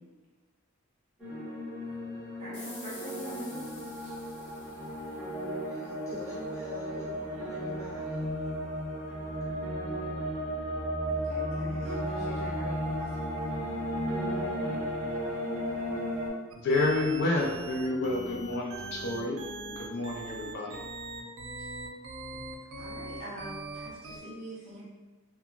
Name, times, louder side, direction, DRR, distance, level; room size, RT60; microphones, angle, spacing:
sound 1, 1.2-16.3, equal, 5° right, 1.1 m, -34 dB
voice 1, 2.4-3.7 4.0-4.2 11.1-13.5 21.6-21.7 22.2-22.4 22.8-24.8, right 1 dB, 35° right, -8 dB, 0.8 m, -44 dB
Turning gas off, 2.5-5.9, left 2 dB, 70° left, 1.1 m, -49 dB
voice 2, 5.4-8.2, left 1 dB, 15° left, -11 dB, 1.1 m, -46 dB
sound 2, 16.5-24.2, right 3 dB, 75° right, 0.4 m, -41 dB
voice 3, 16.6-19.4 19.7-20.8, left 2 dB, 55° left, -1 dB, 0.3 m, -29 dB
2.9 x 2.2 x 2.4 m, 1.2 s
head